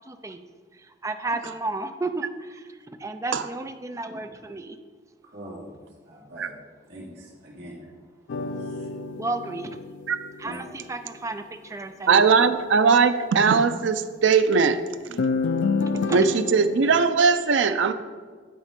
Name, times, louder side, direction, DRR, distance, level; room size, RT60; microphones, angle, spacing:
voice 1, 0.1-0.4 1.0-4.8 9.2-9.8 10.4-12.2 15.8-16.2, right 2 dB, 15° right, 7 dB, 0.4 m, -33 dB
voice 2, 5.2-5.7 6.0-6.5 6.9-7.9 8.6-8.9 10.4-10.6 15.1-15.3, right 1 dB, 60° right, -7 dB, 2.5 m, -42 dB
sound 1, 8.3-10.9 15.2-16.9, left 4 dB, 65° left, 0.4 m, -29 dB
voice 3, 12.1-14.8 16.1-17.9, right 5 dB, 80° right, 10 dB, 0.5 m, -19 dB
9.0 x 4.2 x 5.2 m, 1.5 s
head